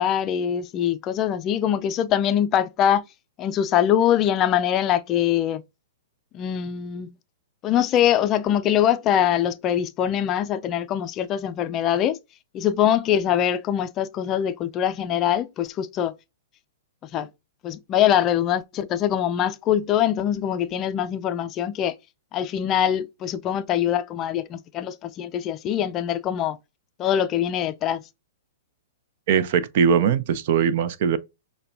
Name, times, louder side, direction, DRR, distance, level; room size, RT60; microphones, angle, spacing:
voice 1, 0.0-3.0 3.4-5.6 6.3-7.2 7.6-12.2 12.5-16.1 17.1-17.3 17.6-22.0 22.3-26.6 27.0-28.0, left 10 dB, 30° left, 0.4 m, -23 dB
voice 2, 29.3-31.2, right 7 dB, 55° right, 0.5 m, -20 dB
6.6 x 2.2 x 2.5 m
hypercardioid pair, 120°, 0 cm